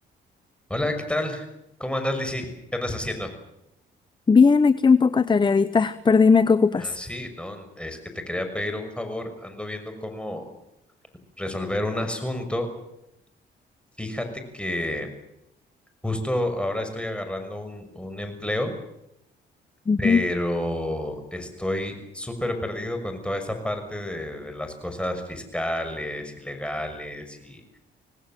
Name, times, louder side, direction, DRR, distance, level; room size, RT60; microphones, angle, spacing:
voice 1, 0.7-1.5 1.8-3.3 6.8-10.5 11.4-12.7 14.0-14.3 14.5-15.1 16.0-18.7 20.0-27.8, left 1 dB, 5° left, 7 dB, 6.2 m, -30 dB
voice 2, 4.3-7.0 19.9-20.2, left 5 dB, 25° left, 16 dB, 0.8 m, -18 dB
27.0 x 18.5 x 7.6 m, 0.84 s
cardioid pair, 90°, 20 cm